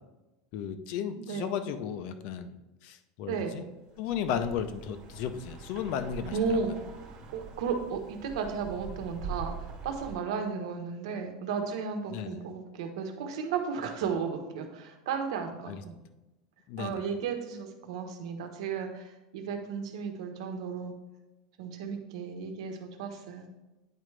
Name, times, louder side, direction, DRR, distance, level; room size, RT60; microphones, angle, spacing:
voice 1, 0.5-2.6 2.8-3.7 4.0-6.6 12.1-12.4 15.7-15.8 16.7-17.0, left 8 dB, 50° left, 11 dB, 0.5 m, -34 dB
voice 2, 1.1-1.5 3.3-3.5 6.3-6.7 7.3-9.5 9.8-15.9 16.8-19.0 19.3-20.9 21.6-23.5, right 5 dB, 80° right, 5 dB, 1.1 m, -34 dB
sound 1, 3.8-10.2, right 5 dB, 35° right, 1.4 m, -43 dB
9.1 x 4.9 x 3.3 m, 1.0 s
supercardioid pair, 170°, 3 cm